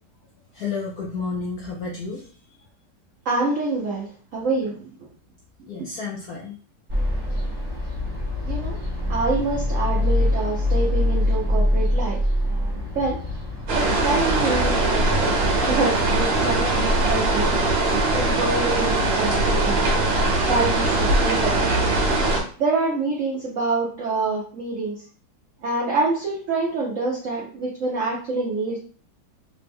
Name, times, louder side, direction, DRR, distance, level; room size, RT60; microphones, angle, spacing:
voice 1, 0.5-2.3 5.7-6.6 7.7-7.8, left 4 dB, 85° left, -1 dB, 0.8 m, -31 dB
voice 2, 3.3-4.7 5.0-5.1 8.4-8.7 9.1-13.2 13.7-15.3 15.6-17.5 18.1-19.8 20.4-21.7 22.6-25.0 25.6-28.8, right 3 dB, 90° right, -2 dB, 0.6 m, -26 dB
sound 1, 6.9-15.7, left 1 dB, 50° right, 0.3 m, -24 dB
sound 2, 13.7-22.4, right 2 dB, 65° right, 1.3 m, -21 dB
3.4 x 2.1 x 3.3 m, 0.43 s
omnidirectional pair, 2.1 m